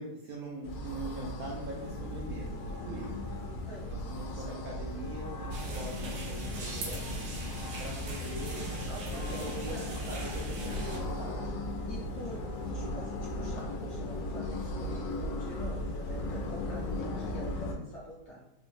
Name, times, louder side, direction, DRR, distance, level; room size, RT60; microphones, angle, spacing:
voice 1, 0.0-3.4 3.9-7.2 7.8-8.6 9.1-9.8 10.1-10.3 10.6-11.4, right 2 dB, 70° right, -2 dB, 0.9 m, -42 dB
sound 1, 0.6-17.7, left 1 dB, 90° left, 1.2 m, -37 dB
voice 2, 3.4-4.0 4.3-4.6 8.3-10.4 10.7-11.0 11.8-18.4, right 1 dB, 50° left, -5 dB, 0.9 m, -46 dB
sound 2, 5.5-11.0, right 1 dB, 85° right, 1.4 m, -41 dB
sound 3, 6.6-9.3, right 1 dB, 15° right, 0.4 m, -52 dB
3.7 x 2.0 x 3.1 m, 0.88 s
omnidirectional pair, 1.9 m